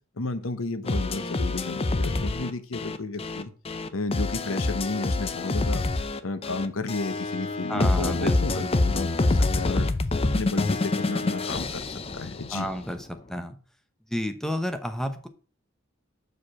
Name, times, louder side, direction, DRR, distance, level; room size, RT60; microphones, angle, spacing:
voice 1, 0.2-3.5 3.9-5.8 6.2-9.9 10.3-12.7, left 3 dB, 85° left, 11 dB, 0.9 m, -32 dB
sound 1, 0.9-12.8, left 2 dB, 30° left, 0.5 m, -26 dB
voice 2, 7.7-8.7 12.5-13.6 14.1-15.3, equal, ahead, 7 dB, 0.8 m, -31 dB
6.7 x 5.1 x 6.0 m, 0.38 s
head